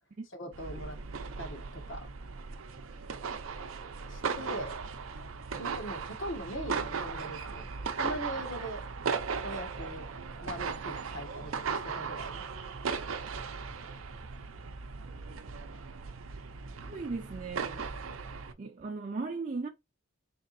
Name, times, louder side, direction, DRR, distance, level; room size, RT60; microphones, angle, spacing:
voice 1, 0.3-1.0 1.4-2.1 4.1-4.7 5.6-7.6 8.0-8.8 9.4-10.0 10.4-12.5, equal, 70° left, 1.5 m, -40 dB
sound 1, 0.5-18.5, right 5 dB, 80° right, 0.6 m, -37 dB
voice 2, 16.8-17.9 18.6-19.7, right 4 dB, 40° right, 0.5 m, -37 dB
4.0 x 3.4 x 2.6 m
head